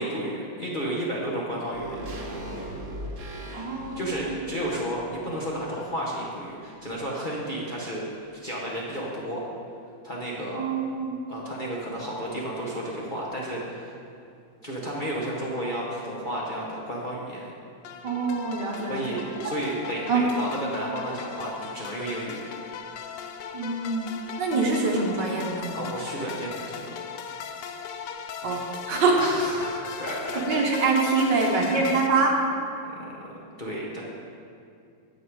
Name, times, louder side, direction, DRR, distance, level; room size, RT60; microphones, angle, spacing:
voice 1, 0.0-2.0 3.7-8.0 8.4-9.4 10.0-10.6 11.3-13.9 14.6-17.5 18.9-22.4 25.7-26.9 29.1-30.4 31.3-31.9 32.8-34.0, right 1 dB, 30° left, -5 dB, 1.0 m, -32 dB
sound 1, 1.7-6.2 6.5-6.6, right 1 dB, 50° right, 1.6 m, -39 dB
voice 2, 3.5-4.1 10.5-11.1 18.0-19.5 20.1-20.3 23.5-24.1 24.4-25.7 28.4-29.2 30.3-32.4, right 3 dB, 65° right, 0 dB, 1.8 m, -25 dB
sound 2, 17.8-32.1, left 7 dB, 75° left, 1.1 m, -38 dB
9.3 x 8.1 x 4.8 m, 2.5 s
omnidirectional pair, 2.1 m